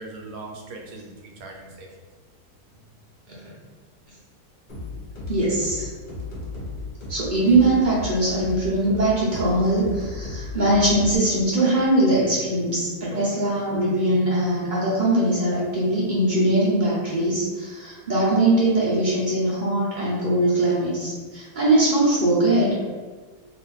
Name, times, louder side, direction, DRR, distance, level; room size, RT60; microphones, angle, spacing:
voice 1, 0.0-2.0, right 2 dB, 70° right, 1 dB, 1.0 m, -40 dB
sound 1, 4.7-11.2, left 3 dB, 50° left, 1.0 m, -35 dB
voice 2, 5.3-5.9 7.1-22.7, right 1 dB, 45° right, -7 dB, 0.6 m, -21 dB
2.6 x 2.5 x 3.8 m, 1.4 s
omnidirectional pair, 1.7 m